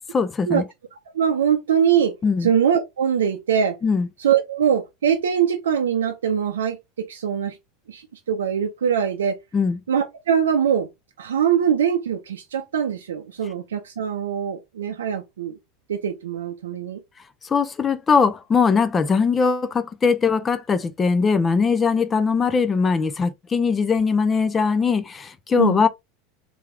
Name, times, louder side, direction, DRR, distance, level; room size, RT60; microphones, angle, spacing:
voice 1, 0.1-0.6 2.2-2.5 3.8-4.1 9.5-9.8 17.4-25.9, left 5 dB, 25° left, 0.6 m, -20 dB
voice 2, 1.1-2.1 2.4-3.8 4.2-6.8 7.1-7.6 7.9-9.4 9.9-10.9 11.2-15.6 15.9-17.0 25.6-25.8, right 8 dB, 80° right, 0.6 m, -22 dB
3.4 x 3.4 x 3.3 m
hypercardioid pair, 85°, 0 cm